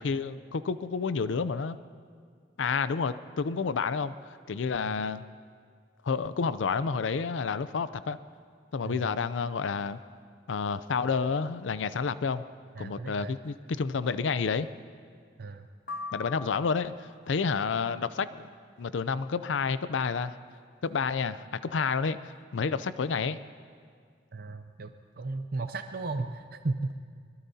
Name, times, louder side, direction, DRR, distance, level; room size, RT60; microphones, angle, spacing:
voice 1, 0.0-1.8 2.6-5.2 6.0-8.2 8.7-10.0 10.5-12.4 12.8-14.7 16.1-18.5 18.8-20.4 20.8-23.4, left 5 dB, 80° left, 14 dB, 0.5 m, -30 dB
voice 2, 12.7-13.4 15.4-15.7 24.3-27.0, right 3 dB, 55° right, 7 dB, 0.6 m, -35 dB
sound 1, 15.9-17.2, left 4 dB, 50° left, 1.3 m, -40 dB
23.0 x 21.0 x 2.8 m, 2.1 s
head